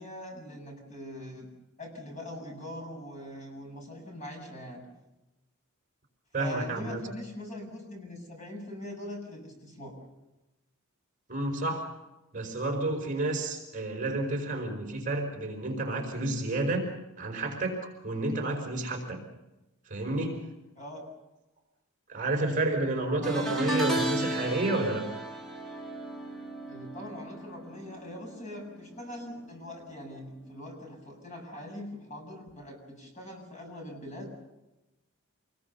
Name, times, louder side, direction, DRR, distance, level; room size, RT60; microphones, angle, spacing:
voice 1, 0.0-1.5 1.8-4.8 6.4-9.9 20.8-21.1 26.7-34.3, left 1 dB, 35° left, 1 dB, 7.4 m, -42 dB
voice 2, 6.3-7.0 11.3-11.9 12.3-16.9 17.2-19.2 19.9-20.5 22.1-25.0, right 2 dB, 35° right, 2 dB, 4.9 m, -30 dB
sound 1, 23.2-28.6 28.9-29.3 30.5-30.6, right 1 dB, ahead, 3.8 m, -33 dB
28.0 x 20.5 x 7.0 m, 1.0 s
head